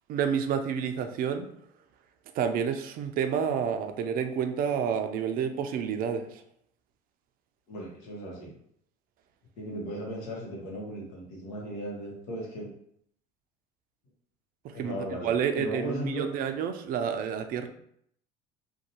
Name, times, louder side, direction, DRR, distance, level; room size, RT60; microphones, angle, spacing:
voice 1, 0.1-1.5 2.3-6.4 14.6-15.0 15.2-17.7, right 7 dB, 50° right, 7 dB, 0.4 m, -29 dB
voice 2, 7.7-8.5 9.6-12.7 14.7-16.3, equal, 75° left, -2 dB, 0.9 m, -37 dB
2.5 x 2.2 x 2.7 m, 0.68 s
hypercardioid pair, 75°, 19 cm